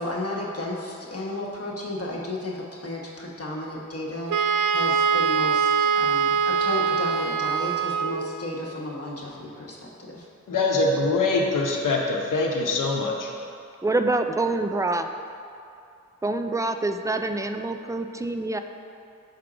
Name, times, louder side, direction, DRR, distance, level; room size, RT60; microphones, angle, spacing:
voice 1, 0.0-10.3, left 1 dB, 50° left, -3 dB, 1.1 m, -33 dB
Wind instrument woodwind instrument, 4.3-8.3, right 6 dB, 75° right, 0.5 m, -23 dB
voice 2, 10.5-13.3, left 3 dB, 85° left, 0 dB, 0.8 m, -23 dB
voice 3, 13.8-15.1 16.2-18.6, right 2 dB, 10° right, 7 dB, 0.3 m, -26 dB
5.7 x 3.7 x 4.9 m, 2.5 s
cardioid pair, 40°, 31 cm